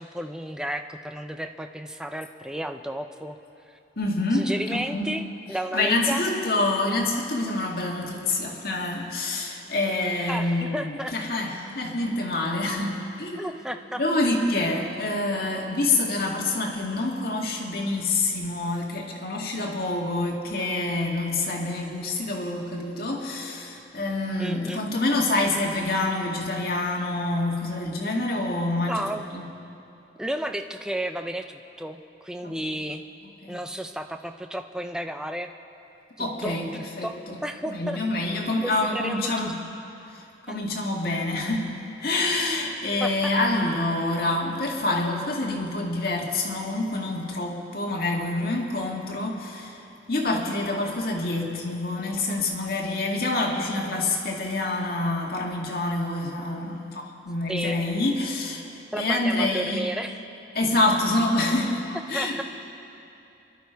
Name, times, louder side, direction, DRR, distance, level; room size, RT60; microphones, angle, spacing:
voice 1, 0.0-3.4 4.3-6.2 10.3-11.1 13.4-14.0 24.4-24.8 28.9-29.3 30.2-33.0 33.5-35.5 36.2-37.2 37.4-38.0 38.6-39.5 40.5-40.6 43.0-43.3 57.5-57.8 58.9-60.2 62.1-62.4, right 1 dB, 5° right, 6 dB, 0.5 m, -32 dB
voice 2, 4.0-5.1 5.7-13.6 14.0-29.5 32.4-32.6 33.4-33.6 36.2-37.4 37.7-39.6 40.1-40.2 40.5-49.8 50.1-59.9 60.6-62.4, left 2 dB, 55° left, -1 dB, 2.1 m, -27 dB
26.0 x 11.5 x 4.7 m, 2.9 s
head